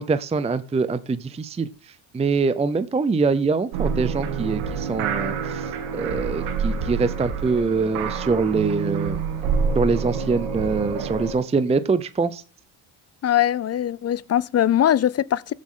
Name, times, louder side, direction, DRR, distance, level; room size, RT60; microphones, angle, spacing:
voice 1, 0.0-1.7 2.1-9.2 9.8-12.4, right 4 dB, 15° right, 0.6 m, -24 dB
sound 1, 3.7-11.3, right 6 dB, 85° right, 2.4 m, -27 dB
voice 2, 13.2-15.5, left 11 dB, 35° left, 0.5 m, -21 dB
15.5 x 7.5 x 3.8 m
cardioid pair, 105°, 49 cm